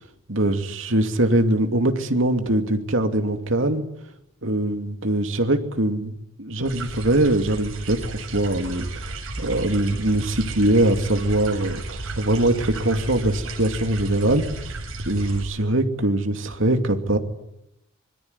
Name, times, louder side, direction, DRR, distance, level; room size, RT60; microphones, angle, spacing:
voice 1, 0.3-3.8 4.4-14.4 15.1-17.2, right 1 dB, 60° right, 6 dB, 2.8 m, -22 dB
sound 1, 6.6-15.4, right 2 dB, 80° right, 6.3 m, -33 dB
25.5 x 22.5 x 9.8 m, 0.86 s
head